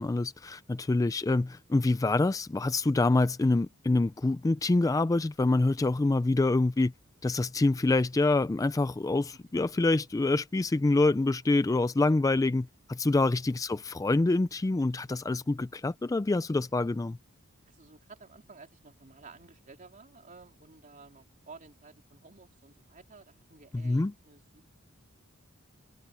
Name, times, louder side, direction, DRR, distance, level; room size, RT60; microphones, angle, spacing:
voice 1, 0.0-6.9 7.2-17.2 23.7-24.1, left 2 dB, 15° left, 0.3 m, -26 dB
voice 2, 1.0-1.3 17.7-24.7, right 4 dB, 40° right, 3.6 m, -53 dB
head